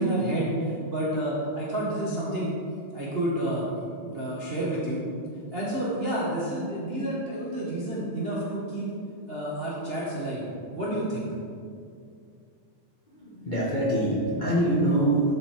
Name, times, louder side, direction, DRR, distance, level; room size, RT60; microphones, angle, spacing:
voice 1, 0.0-2.5 2.9-3.7 4.0-5.0 5.5-8.9 9.3-10.5 10.7-11.3, right 1 dB, 45° right, -6 dB, 0.7 m, -29 dB
voice 2, 13.1-15.3, right 1 dB, 70° left, -6 dB, 0.4 m, -24 dB
11.0 x 5.4 x 4.6 m, 2.3 s
omnidirectional pair, 3.4 m